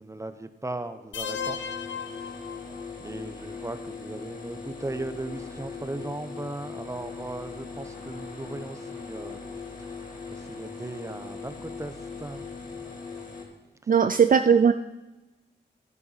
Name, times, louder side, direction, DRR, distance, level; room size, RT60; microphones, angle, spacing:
voice 1, 0.0-1.6 2.0-2.5 3.0-9.4 10.3-12.9 13.8-13.9, right 2 dB, 15° right, 10 dB, 0.8 m, -37 dB
sound 1, 1.1-3.1, left 7 dB, 85° left, 0.7 m, -35 dB
sound 2, 1.3-13.4, left 4 dB, 45° left, 2.5 m, -40 dB
voice 2, 13.9-14.7, right 7 dB, 45° right, 10 dB, 0.4 m, -18 dB
11.0 x 10.0 x 4.1 m, 1.1 s
cardioid pair, 65°, 19 cm